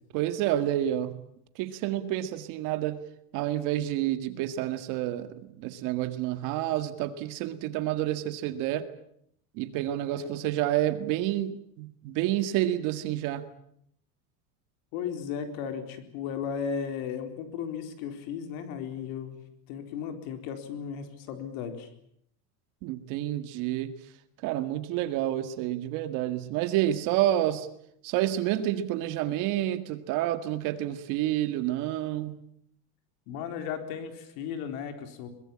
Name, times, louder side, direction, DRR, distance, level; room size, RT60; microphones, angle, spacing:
voice 1, 0.1-1.1 1.6-3.0 3.3-8.9 9.5-13.5 22.8-23.9 24.4-27.7 28.0-32.4, right 13 dB, 45° right, 10 dB, 1.9 m, -29 dB
voice 2, 14.9-19.4 19.7-21.9 33.3-35.3, left 7 dB, 55° left, 7 dB, 4.2 m, -35 dB
23.0 x 21.5 x 8.7 m, 0.70 s
cardioid pair, 170°, 41 cm